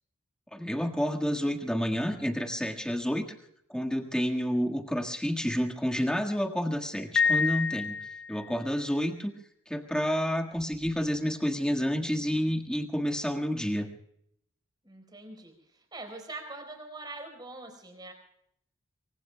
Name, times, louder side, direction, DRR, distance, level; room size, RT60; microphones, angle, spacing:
voice 1, 0.5-3.3 3.7-7.9 8.3-9.3 9.7-13.9, equal, 5° left, 2 dB, 1.6 m, -29 dB
Piano, 7.2-8.6, left 6 dB, 55° left, 0.6 m, -28 dB
voice 2, 14.8-18.1, right 2 dB, 20° right, 5 dB, 4.2 m, -43 dB
25.0 x 24.5 x 2.2 m, 0.74 s
head